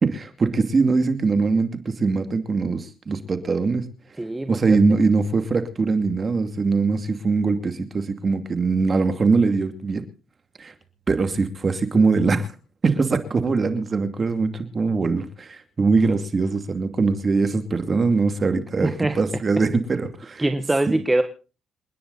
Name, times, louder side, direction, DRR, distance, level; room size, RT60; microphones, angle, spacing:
voice 1, 0.0-3.9 4.5-10.0 10.6-10.7 11.1-12.5 12.8-20.4, right 4 dB, 35° right, 8 dB, 2.5 m, -22 dB
voice 2, 4.2-4.8 18.8-19.2 20.4-21.2, right 2 dB, 15° right, 7 dB, 1.4 m, -23 dB
28.0 x 10.0 x 4.1 m, 0.36 s
cardioid pair, 90°, 0 cm